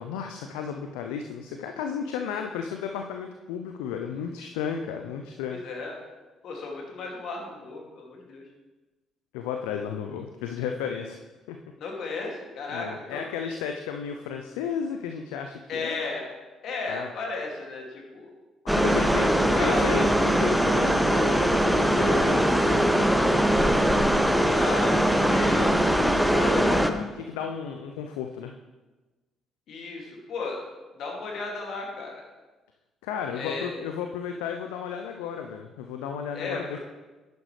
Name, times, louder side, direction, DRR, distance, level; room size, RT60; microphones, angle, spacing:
voice 1, 0.0-5.6 9.3-11.2 11.5-11.6 12.7-16.0 16.9-17.1 18.7-19.3 19.6-23.1 26.3-28.5 33.0-36.8, left 7 dB, 75° left, 4 dB, 0.5 m, -33 dB
voice 2, 5.5-6.0 6.4-8.5 11.8-13.3 15.7-16.3 16.6-18.3 18.8-19.1 19.4-20.2 24.0-25.9 29.7-30.6 30.9-32.2 33.3-33.8 36.3-36.8, left 3 dB, 60° left, 0 dB, 2.4 m, -34 dB
sound 1, 18.7-26.9, equal, ahead, 0.9 m, -21 dB
11.0 x 9.5 x 3.3 m, 1.2 s
hypercardioid pair, 45°, 0 cm